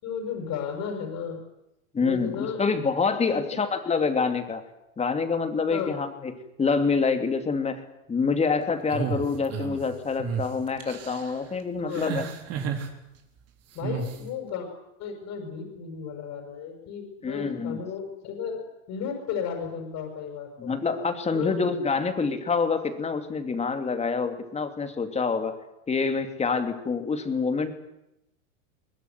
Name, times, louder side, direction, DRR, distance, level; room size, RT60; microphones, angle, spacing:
voice 1, 0.0-1.4 2.0-2.9 3.3-3.6 5.7-5.9 11.8-12.0 13.7-14.7 15.0-20.7 21.3-21.6, left 7 dB, 40° left, 3 dB, 6.0 m, -34 dB
voice 2, 1.9-4.6 5.0-6.3 6.6-12.3 17.2-17.8 20.6-25.6 25.9-27.7, left 4 dB, 15° left, 7 dB, 2.7 m, -26 dB
sound 1, 8.9-9.8 10.2-10.4 10.8-11.3 11.9-12.9 13.8-14.2, right 6 dB, 35° right, 4.1 m, -31 dB
22.0 x 21.0 x 9.6 m, 0.86 s
supercardioid pair, 130°, 41 cm